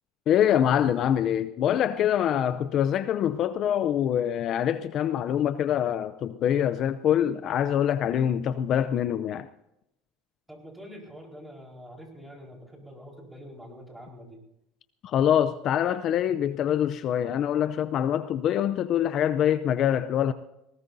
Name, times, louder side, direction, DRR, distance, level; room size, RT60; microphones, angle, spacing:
voice 1, 0.3-9.5 15.0-20.3, left 10 dB, 50° left, 0.6 m, -25 dB
voice 2, 10.5-14.4, equal, 5° right, 4.5 m, -45 dB
20.5 x 18.0 x 2.7 m
supercardioid pair, 115°, 0 cm